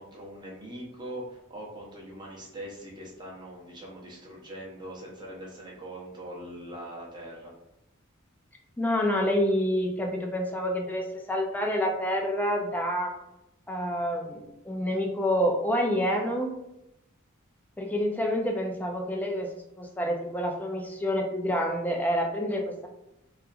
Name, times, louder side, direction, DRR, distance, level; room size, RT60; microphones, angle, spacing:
voice 1, 0.0-7.5, right 1 dB, 20° right, -4 dB, 0.7 m, -42 dB
voice 2, 8.8-13.1 13.7-16.5 17.8-22.9, equal, 10° left, 1 dB, 0.3 m, -28 dB
2.8 x 2.3 x 2.3 m, 0.89 s
head